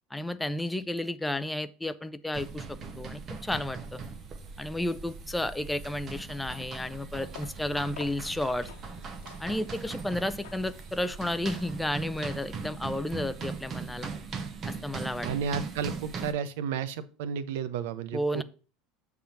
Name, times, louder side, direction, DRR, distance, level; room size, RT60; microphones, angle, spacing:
voice 1, 0.1-4.0 4.6-8.7 9.4-14.1 14.7-15.3 18.1-18.4, left 1 dB, 5° left, 12 dB, 0.4 m, -32 dB
sound 1, 2.3-16.3, right 4 dB, 25° right, 0.8 m, -39 dB
sound 2, 7.2-12.8, left 10 dB, 85° left, 1.0 m, -52 dB
voice 2, 15.2-18.4, right 7 dB, 80° right, 13 dB, 0.7 m, -32 dB
7.6 x 3.6 x 5.8 m, 0.37 s
supercardioid pair, 155°, 0 cm